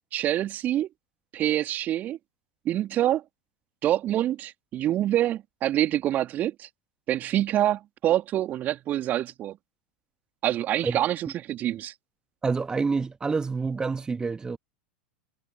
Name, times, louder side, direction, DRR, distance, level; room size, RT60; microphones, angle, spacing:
voice 1, 0.1-0.9 1.3-2.2 2.7-3.2 3.8-6.7 7.1-9.6 10.4-11.9, right 12 dB, 35° right, 3.4 m, -26 dB
voice 2, 12.4-14.6, right 4 dB, 15° right, 2.0 m, -27 dB
figure-of-eight pair, 90°, 5 cm